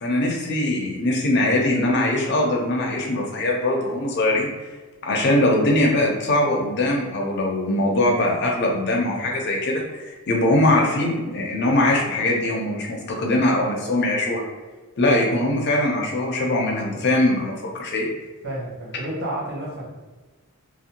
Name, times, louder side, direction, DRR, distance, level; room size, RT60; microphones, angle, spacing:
voice 1, 0.0-4.5 5.0-14.4 15.0-18.1, left 1 dB, 50° left, -1 dB, 0.5 m, -21 dB
voice 2, 18.4-19.9, right 1 dB, 50° right, -4 dB, 0.7 m, -30 dB
2.5 x 2.1 x 2.8 m, 1.2 s
head